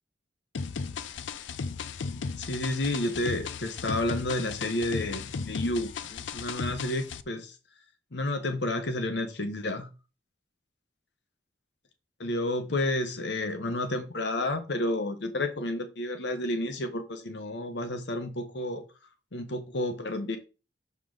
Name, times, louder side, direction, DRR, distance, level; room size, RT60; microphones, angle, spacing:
sound 1, 0.5-7.2, left 5 dB, 90° left, 0.5 m, -36 dB
voice 1, 2.4-7.6 8.1-9.9 12.2-18.8 19.3-20.4, left 1 dB, 70° left, 8 dB, 1.0 m, -31 dB
6.3 x 5.4 x 3.9 m, 0.31 s
head